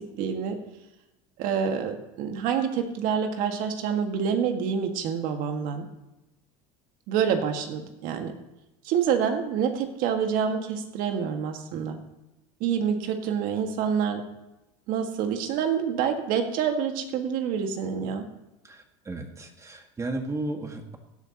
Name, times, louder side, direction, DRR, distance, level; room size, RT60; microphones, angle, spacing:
voice 1, 0.2-0.6 1.4-5.9 7.1-8.3 8.8-12.0 12.6-14.2 14.9-18.3, right 7 dB, 60° right, 5 dB, 1.9 m, -27 dB
voice 2, 18.6-21.0, right 2 dB, 20° right, 4 dB, 1.8 m, -34 dB
16.5 x 10.5 x 3.0 m, 0.96 s
supercardioid pair, 110°, 16 cm